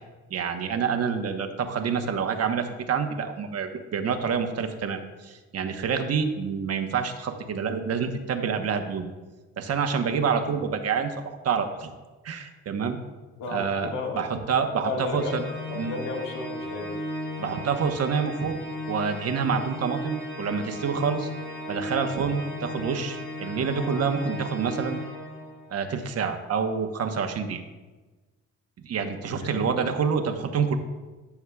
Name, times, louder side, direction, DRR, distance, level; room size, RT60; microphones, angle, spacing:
voice 1, 0.3-9.1 9.6-11.9 12.2-13.0 13.5-13.9 14.1-15.4 15.8-16.0 17.4-18.6 18.9-21.3 21.7-25.0 25.7-27.6 28.8-30.8, right 6 dB, 55° right, 6 dB, 1.0 m, -27 dB
voice 2, 13.4-14.2 14.8-15.4 15.7-17.0 29.4-29.6, left 3 dB, 85° left, 0 dB, 1.8 m, -33 dB
Organ, 15.2-25.8, left 1 dB, 45° left, 2.9 m, -36 dB
14.5 x 7.0 x 2.3 m, 1.2 s
cardioid pair, 90°, 30 cm